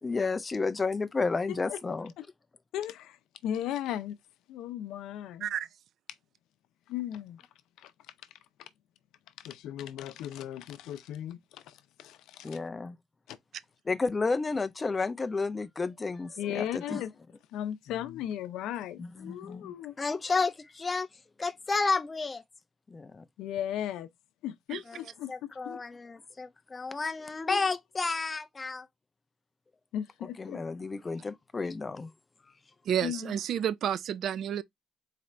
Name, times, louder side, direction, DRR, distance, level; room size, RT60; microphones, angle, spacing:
voice 1, 0.0-2.1 12.4-13.0 13.9-17.0 19.0-21.1 21.4-22.4 22.9-23.2 24.9-28.9 30.4-32.1, left 4 dB, 20° left, 0.4 m, -31 dB
voice 2, 2.7-3.2 3.4-4.2 4.5-5.5 6.9-7.4 7.8-7.9 9.4-12.6 13.3-13.4 16.4-17.1 17.5-19.9 23.4-24.1 24.4-25.8 27.5-27.6 29.9-30.6 33.0-33.3, left 11 dB, 90° left, 0.5 m, -36 dB
voice 3, 32.9-34.6, right 9 dB, 55° right, 0.3 m, -30 dB
4.1 x 2.4 x 4.3 m
cardioid pair, 155°, 0 cm